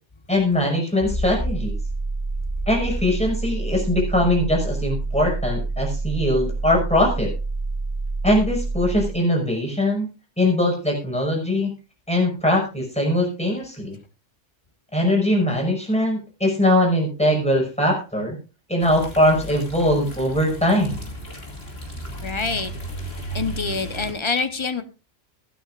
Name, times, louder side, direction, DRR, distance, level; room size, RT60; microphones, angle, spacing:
voice 1, 0.3-1.7 2.7-7.3 8.2-10.1 10.4-11.7 12.1-14.0 14.9-18.4 18.7-21.1, left 1 dB, 5° left, -1 dB, 5.8 m, -21 dB
sound 1, 1.0-9.1, right 3 dB, 20° right, 1.3 m, -27 dB
sound 2, 18.8-24.1, right 1 dB, 55° left, 2.9 m, -35 dB
voice 2, 22.2-22.7 23.3-24.8, left 4 dB, 25° left, 10 dB, 0.9 m, -26 dB
23.5 x 9.0 x 2.5 m, 0.31 s
omnidirectional pair, 1.3 m